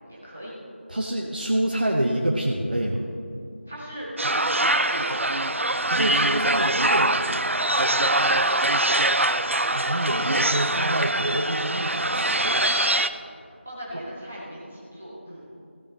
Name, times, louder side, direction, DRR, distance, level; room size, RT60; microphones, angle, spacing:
voice 1, 0.1-0.6 3.7-5.5 8.2-8.5 13.6-15.5, equal, 5° left, -7 dB, 0.6 m, -38 dB
voice 2, 0.9-3.0 5.9-7.2 9.7-12.6, right 1 dB, 45° right, -1 dB, 0.9 m, -27 dB
sound 1, 4.2-13.1, right 1 dB, 90° right, 0.6 m, -23 dB
15.5 x 9.0 x 4.0 m, 2.4 s
figure-of-eight pair, 180°, 7 cm